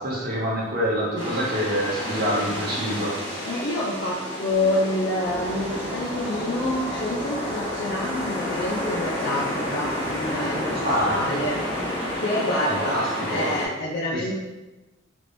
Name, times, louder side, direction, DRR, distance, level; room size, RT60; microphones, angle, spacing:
voice 1, 0.0-3.2 10.8-11.3 12.7-13.5 14.1-14.3, equal, 45° right, -4 dB, 0.8 m, -26 dB
sound 1, 1.2-13.7, left 1 dB, 20° left, 1.1 m, -30 dB
voice 2, 3.4-11.6 12.2-14.3, left 1 dB, 50° left, -4 dB, 0.4 m, -27 dB
sound 2, 5.2-12.2, right 1 dB, 5° right, 0.9 m, -41 dB
3.3 x 2.9 x 2.6 m, 1.1 s
head